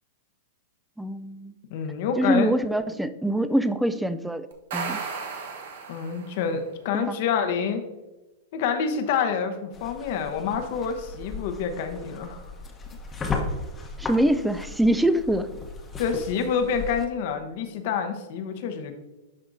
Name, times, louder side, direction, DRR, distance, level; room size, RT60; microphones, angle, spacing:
voice 1, 1.0-1.5 2.2-4.5 4.7-5.0 6.9-7.2 14.0-15.5, right 1 dB, 5° right, 12 dB, 0.3 m, -24 dB
voice 2, 1.7-2.5 5.9-7.8 8.5-12.4 16.0-18.9, left 6 dB, 60° left, 7 dB, 0.8 m, -27 dB
sound 1, 4.5-6.5, right 5 dB, 70° right, 1.1 m, -34 dB
sound 2, 9.7-17.1, left 3 dB, 20° left, 0.9 m, -36 dB
10.5 x 3.6 x 2.6 m, 1.1 s
hypercardioid pair, 120°, 0 cm